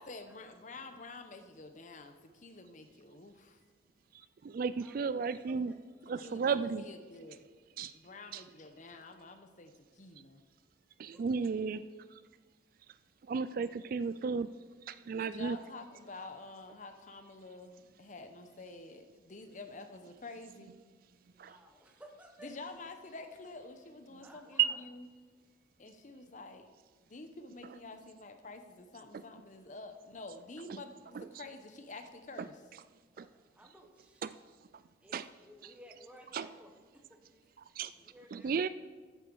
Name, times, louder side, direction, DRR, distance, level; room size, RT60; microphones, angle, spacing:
voice 1, 0.0-3.6 6.2-7.5 7.9-10.4 15.2-20.7 22.4-25.1 25.8-26.7 27.0-32.6, left 3 dB, 45° left, 8 dB, 0.9 m, -49 dB
voice 2, 4.1-5.7 6.0-6.8 7.8-7.9 8.3-8.4 11.0-11.8 12.1-12.2 13.3-14.5 14.9-15.6 21.4-21.6 24.6-24.7 29.1-29.2 30.7-30.8 31.1-31.4 32.4-32.5 33.2-33.3 34.2-34.3 35.1-35.2 35.6-35.7 36.3-36.5 37.8-37.9 38.3-38.7, right 6 dB, 50° right, 14 dB, 0.3 m, -34 dB
voice 3, 4.8-5.8 21.3-22.7 24.2-24.8 33.1-34.4 35.0-37.2 37.9-38.7, equal, 5° right, 3 dB, 1.3 m, -57 dB
13.5 x 9.1 x 4.7 m, 1.5 s
head